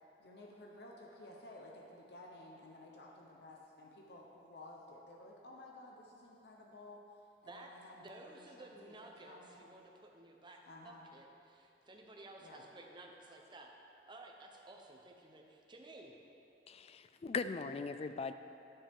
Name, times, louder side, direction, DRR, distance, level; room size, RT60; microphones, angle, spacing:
voice 1, 0.2-7.0 7.4-9.6 10.6-11.1 12.4-12.7, left 1 dB, 65° left, -1 dB, 1.0 m, -54 dB
voice 2, 7.5-13.7 14.1-16.1, right 2 dB, 25° right, 1 dB, 0.9 m, -55 dB
voice 3, 16.7-18.3, left 4 dB, 35° left, 11 dB, 0.3 m, -39 dB
10.0 x 9.8 x 3.7 m, 2.7 s
head